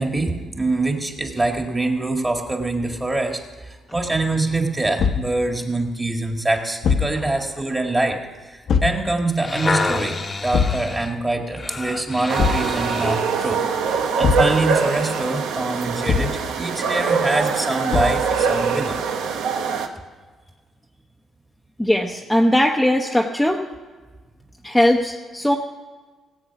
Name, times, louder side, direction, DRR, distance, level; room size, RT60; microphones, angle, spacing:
voice 1, 0.0-13.7 14.2-19.0, right 2 dB, 20° right, 3 dB, 1.9 m, -24 dB
Thump thud, 5.0-5.3 6.8-7.2 8.7-9.0 10.5-10.9 12.4-12.7 14.2-14.6 16.1-16.4 17.9-18.3, left 6 dB, 65° left, 0.9 m, -21 dB
sound 1, 9.2-13.3 13.9-14.0, left 3 dB, 30° left, 1.0 m, -28 dB
sound 2, 12.3-19.9, right 6 dB, 90° right, 0.9 m, -23 dB
voice 2, 21.8-23.6 24.6-25.6, left 1 dB, 5° left, 0 dB, 0.8 m, -19 dB
17.5 x 8.0 x 5.9 m, 1.4 s
cardioid pair, 90°, 0 cm